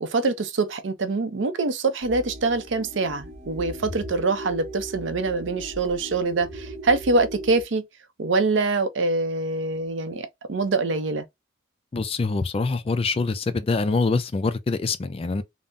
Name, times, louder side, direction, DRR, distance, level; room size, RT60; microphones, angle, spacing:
voice 1, 0.0-7.8 8.2-11.2, right 3 dB, 70° right, 0.5 m, -24 dB
sound 1, 2.0-7.6, right 1 dB, 35° right, 0.8 m, -38 dB
voice 2, 11.9-15.4, left 3 dB, 30° left, 0.3 m, -25 dB
3.5 x 2.0 x 2.5 m
head